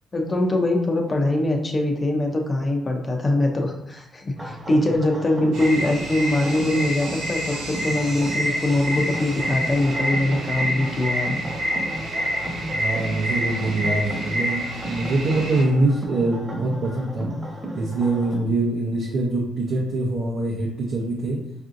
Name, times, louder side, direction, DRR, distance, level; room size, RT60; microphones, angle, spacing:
voice 1, 0.1-11.4, left 1 dB, 30° left, 2 dB, 0.6 m, -23 dB
sound 1, 4.4-18.4, equal, 15° right, 1.1 m, -34 dB
sound 2, 5.5-15.6, equal, 85° right, 1.1 m, -28 dB
voice 2, 12.7-17.3 17.7-21.4, right 2 dB, 70° right, -4 dB, 0.7 m, -24 dB
4.7 x 2.6 x 2.5 m, 0.82 s
cardioid pair, 90°, 0 cm